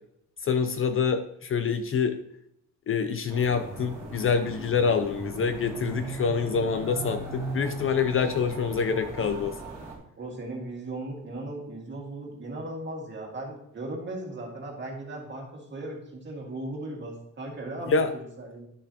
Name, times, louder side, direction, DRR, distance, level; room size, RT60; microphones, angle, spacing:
voice 1, 0.4-2.2 2.9-9.5 17.9-18.1, left 6 dB, 40° left, 9 dB, 0.5 m, -26 dB
sound 1, 3.3-9.9, right 3 dB, 10° right, 2.4 m, -38 dB
voice 2, 10.2-18.7, right 2 dB, 35° right, -1 dB, 1.9 m, -37 dB
11.0 x 6.8 x 2.8 m, 0.77 s
wide cardioid pair, 170°, 32 cm